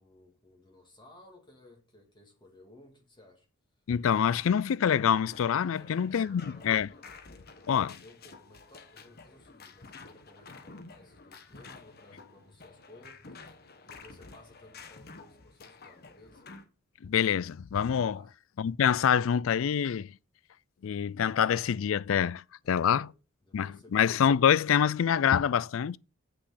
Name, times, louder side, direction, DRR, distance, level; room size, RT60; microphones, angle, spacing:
voice 1, 0.0-3.5 5.7-13.5 13.8-16.5 18.1-18.3 22.6-23.1 23.4-24.0, left 1 dB, 25° left, 2.2 m, -57 dB
voice 2, 3.9-6.9 7.7-7.9 17.0-18.2 18.6-20.1 20.8-23.1 23.5-26.0, left 8 dB, 75° left, 0.4 m, -26 dB
sound 1, 5.3-16.6, left 4 dB, 50° left, 1.2 m, -51 dB
8.2 x 6.2 x 5.7 m
head